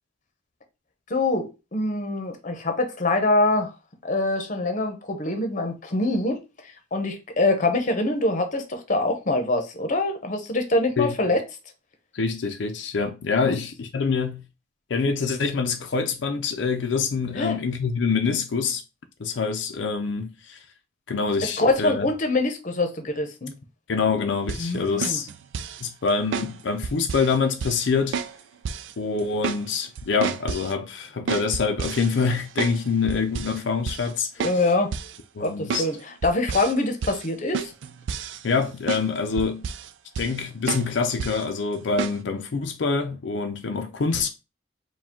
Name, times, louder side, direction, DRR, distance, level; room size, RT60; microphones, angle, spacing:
voice 1, 1.1-3.7 4.0-6.4 6.9-11.4 13.4-13.5 17.3-17.6 21.4-23.5 24.6-25.2 34.4-34.9 35.4-36.0 36.2-37.7, left 2 dB, 45° left, 0.8 m, -24 dB
voice 2, 12.1-14.4 14.9-18.8 19.2-20.6 21.1-22.1 23.9-25.3 25.8-28.2 29.0-34.6 35.3-35.9 38.4-39.7 40.2-44.3, left 5 dB, 80° left, 0.5 m, -25 dB
sound 1, 24.5-24.7 25.0-25.8 26.3-26.5 26.8-27.3 27.6-27.9 28.1-28.4 28.6-28.9 29.2-29.6 30.0-30.7 31.3-32.8 33.1-33.6 33.9-34.1 34.4-34.6 34.9-35.2 35.7-35.9 36.2-36.7 37.0-37.3 37.5-38.6 38.9-39.0 39.4-39.9 40.1-40.4 40.7-40.9 41.2-41.4 42.0-42.2, right 5 dB, 90° right, 0.4 m, -30 dB
4.8 x 2.3 x 3.6 m
head